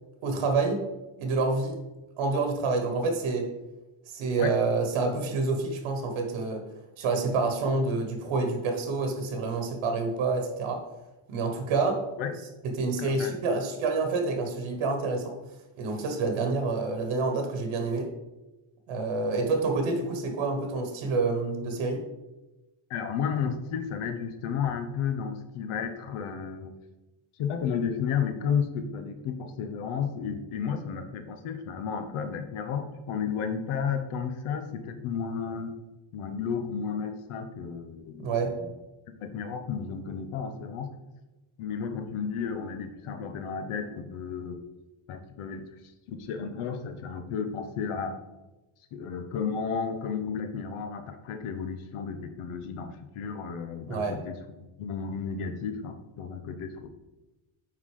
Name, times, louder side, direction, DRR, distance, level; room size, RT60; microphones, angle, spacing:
voice 1, 0.2-0.8 1.2-1.8 2.2-3.5 4.1-6.6 7.0-10.8 11.3-12.0 12.6-15.3 15.8-18.1 18.9-22.0 38.2-38.5 53.9-54.2, right 3 dB, 75° right, 6 dB, 1.4 m, -28 dB
voice 2, 13.0-13.6 22.9-26.7 27.4-35.7 36.1-38.7 39.1-40.9 41.6-44.6 45.1-45.6 46.1-48.2 48.9-56.9, left 6 dB, 85° left, 7 dB, 1.1 m, -33 dB
9.4 x 4.0 x 4.9 m, 1.0 s
cardioid pair, 165°, 49 cm